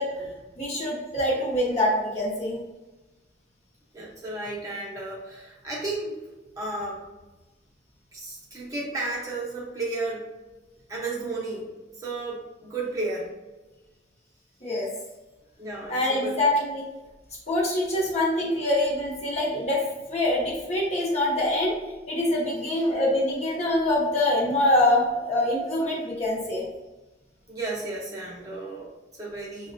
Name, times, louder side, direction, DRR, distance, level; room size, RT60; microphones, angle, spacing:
voice 1, 0.0-2.6 14.6-14.9 15.9-16.8 17.5-19.8 20.1-21.7 22.1-26.7, left 1 dB, 35° left, -4 dB, 0.8 m, -25 dB
voice 2, 3.9-6.2 6.6-7.0 8.1-10.3 10.9-11.7 12.0-13.3 15.6-16.3 27.5-29.7, right 2 dB, 20° right, -5 dB, 0.7 m, -33 dB
5.8 x 2.1 x 2.6 m, 1.1 s
head